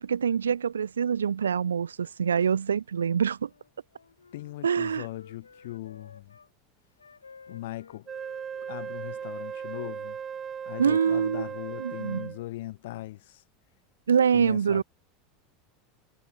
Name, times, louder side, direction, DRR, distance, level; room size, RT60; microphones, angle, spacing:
voice 1, 0.0-3.5 4.6-5.0 10.8-11.5 11.8-12.3 14.1-14.8, right 7 dB, 80° right, 1.2 m, -25 dB
Wind instrument woodwind instrument, 3.4-6.5 7.0-10.1, left 5 dB, 90° left, 5.2 m, -54 dB
voice 2, 4.3-6.4 7.5-8.1 8.7-10.2 10.7-13.4 14.3-14.8, left 17 dB, 65° left, 3.8 m, -39 dB
Wind instrument woodwind instrument 2, 8.1-12.4, right 7 dB, 30° right, 5.5 m, -37 dB
hypercardioid pair, 80°, 0 cm